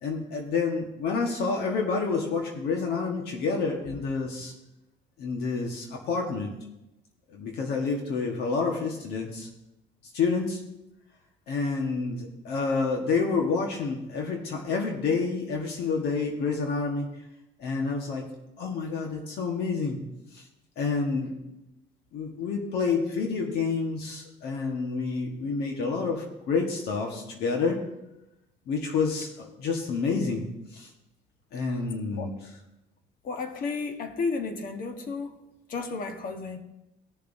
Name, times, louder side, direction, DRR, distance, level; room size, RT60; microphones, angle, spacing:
voice 1, 0.0-4.5 5.2-6.5 7.3-9.5 10.1-10.6 11.5-17.1 17.6-18.3 18.6-20.0 20.3-20.4 20.8-21.3 22.1-27.8 28.7-30.4 30.7-30.9 31.5-32.5, left 4 dB, 75° left, 1 dB, 1.4 m, -28 dB
voice 2, 33.2-35.3 35.7-36.6, left 4 dB, 55° left, 5 dB, 1.3 m, -32 dB
18.0 x 6.9 x 2.7 m, 0.91 s
cardioid pair, 110°, 17 cm